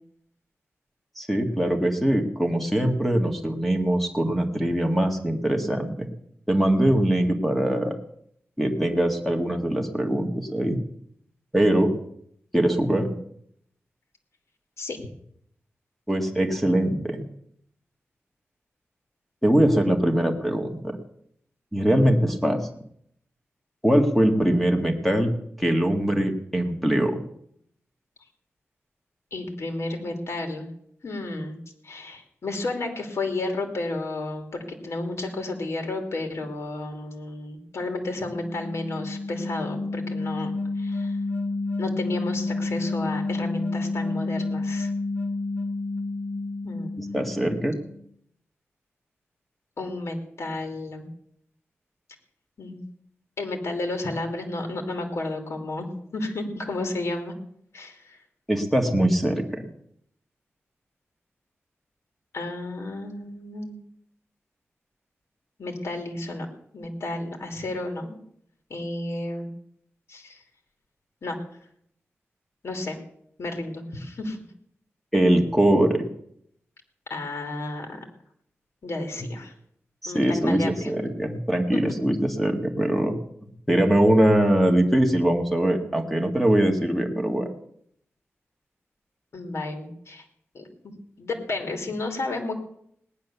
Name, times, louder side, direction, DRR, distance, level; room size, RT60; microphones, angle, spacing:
voice 1, 1.2-6.1 6.5-7.9 8.6-10.8 11.5-12.0 12.5-13.2 16.1-17.3 19.4-21.0 21.7-22.6 23.8-25.3 25.6-27.2 47.0-47.8 58.5-59.6 75.1-76.1 80.0-83.2 83.7-87.5, right 1 dB, ahead, 3 dB, 1.8 m, -22 dB
voice 2, 29.3-30.7 31.0-31.6 31.8-40.5 40.8-41.2 41.8-44.9 46.6-46.9 49.8-51.1 52.6-52.8 53.4-57.3 57.7-58.2 62.3-63.8 65.6-66.5 66.7-68.2 68.7-69.5 70.1-70.4 71.2-71.4 72.6-73.0 73.4-74.4 77.1-78.0 78.8-79.5 80.1-80.9 89.3-90.2 90.5-92.5, left 2 dB, 70° left, 4 dB, 2.9 m, -32 dB
sound 1, 37.9-48.0, left 3 dB, 40° left, 3.1 m, -30 dB
18.5 x 10.5 x 7.0 m, 0.70 s
wide cardioid pair, 100°, 5 cm